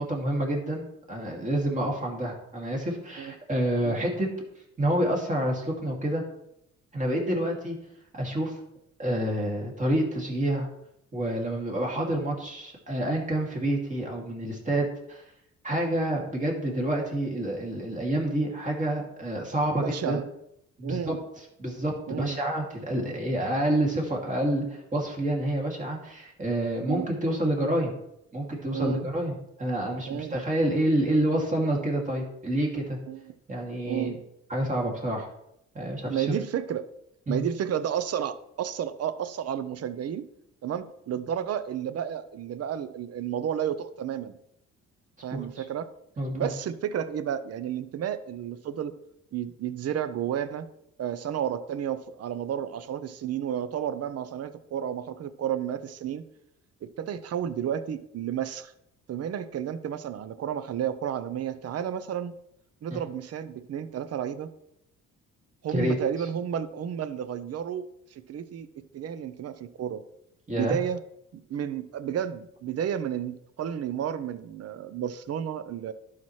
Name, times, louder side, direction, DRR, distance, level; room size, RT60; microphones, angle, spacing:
voice 1, 0.0-4.3 4.8-6.2 6.9-7.8 8.2-8.5 9.0-10.7 11.1-15.2 15.6-20.2 20.8-21.1 21.6-27.9 28.3-33.0 33.5-34.2 34.5-35.3 35.7-36.3 37.3-37.4 45.3-45.6 46.2-46.5 62.9-63.0 65.7-66.0 70.5-70.8, right 1 dB, 25° right, -1 dB, 2.4 m, -28 dB
voice 2, 19.8-20.2 20.8-21.2 22.1-22.4 26.9-27.1 28.7-29.1 30.1-30.4 33.1-33.3 33.8-34.1 36.1-36.9 37.3-40.3 40.6-44.4 45.2-45.9 46.3-48.9 49.3-50.7 51.0-56.2 56.8-58.7 59.1-62.3 62.8-64.5 65.6-67.8 68.1-68.7 68.9-70.0 70.5-71.0 71.3-75.9, right 9 dB, 55° right, 13 dB, 0.7 m, -32 dB
11.5 x 5.8 x 3.2 m, 0.80 s
cardioid pair, 90°, 30 cm